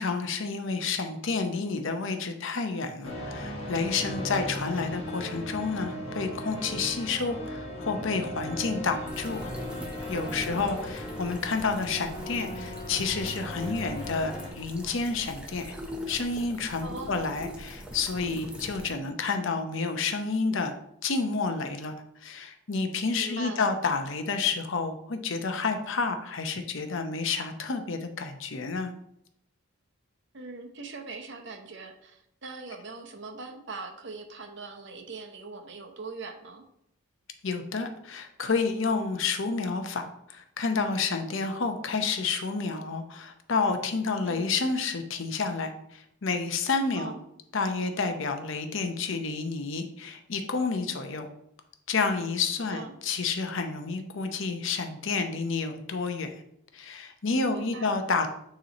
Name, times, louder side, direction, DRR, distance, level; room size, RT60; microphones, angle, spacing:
voice 1, 0.0-9.5 10.1-15.7 16.1-20.7 21.0-21.9 22.2-28.9 37.4-47.1 47.5-51.3 51.9-56.3 56.7-58.3, left 4 dB, 60° left, 6 dB, 0.7 m, -30 dB
sound 1, 3.0-14.5, left 1 dB, 25° left, 1.5 m, -37 dB
sound 2, 9.1-18.9, equal, 5° right, 0.6 m, -42 dB
voice 2, 10.2-10.7 16.8-17.3 23.2-23.7 30.3-36.6 44.2-44.6 47.0-47.2 52.7-52.9 57.5-57.9, right 3 dB, 55° right, 4 dB, 0.8 m, -41 dB
8.8 x 3.1 x 4.1 m, 0.73 s
head